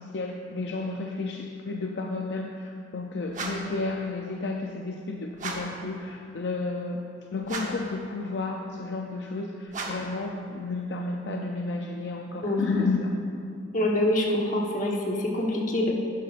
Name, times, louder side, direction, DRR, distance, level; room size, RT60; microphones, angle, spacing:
voice 1, 0.0-13.1, left 3 dB, 65° left, 2 dB, 0.5 m, -32 dB
sound 1, 3.3-3.8 5.3-5.8 7.4-7.9 9.7-10.2, right 3 dB, 45° right, 1.0 m, -35 dB
voice 2, 13.7-15.9, left 1 dB, 45° left, -1 dB, 1.2 m, -25 dB
11.0 x 10.5 x 2.5 m, 2.5 s
head